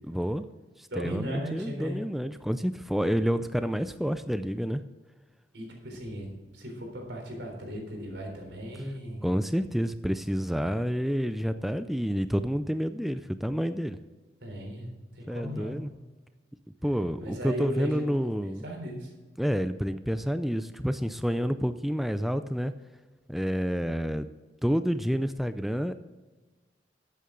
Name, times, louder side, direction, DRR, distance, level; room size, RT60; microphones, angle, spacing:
voice 1, 0.1-0.4 0.8-4.8 9.2-14.0 15.3-15.9 16.8-18.6 19.4-22.7 23.3-24.3 24.6-26.0, equal, ahead, 11 dB, 0.3 m, -29 dB
voice 2, 0.9-2.0 5.5-9.2 14.4-15.8 17.2-18.1 18.6-19.1, equal, 80° right, 2 dB, 3.7 m, -36 dB
12.5 x 8.5 x 3.8 m, 1.2 s
head